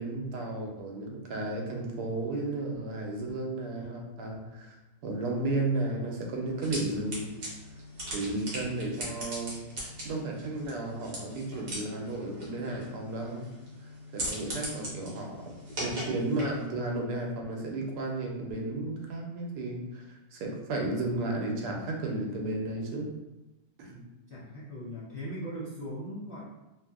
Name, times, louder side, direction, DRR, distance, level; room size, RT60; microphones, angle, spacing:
voice 1, 0.0-4.8 5.0-7.3 8.1-9.5 10.0-13.4 14.1-15.5 15.8-23.1 23.8-24.0, right 2 dB, 90° right, 1 dB, 1.2 m, -33 dB
sound 1, 6.6-16.7, equal, 45° right, 1.0 m, -40 dB
voice 2, 24.3-26.4, equal, 60° left, -10 dB, 0.5 m, -39 dB
2.9 x 2.6 x 2.3 m, 1.0 s
omnidirectional pair, 1.7 m